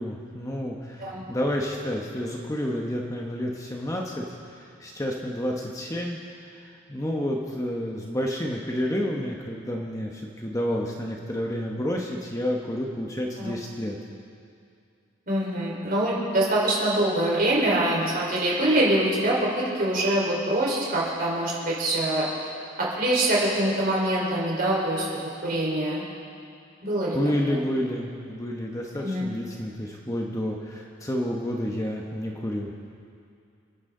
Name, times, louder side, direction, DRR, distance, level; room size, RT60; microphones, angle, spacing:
voice 1, 0.0-4.3 4.5-14.0 27.1-32.7, equal, 15° left, -1 dB, 1.0 m, -30 dB
voice 2, 15.3-22.3 22.8-26.0 26.8-27.2 27.4-27.6 29.0-29.3, right 1 dB, 45° right, -5 dB, 4.1 m, -24 dB
28.5 x 9.8 x 3.8 m, 2.4 s
head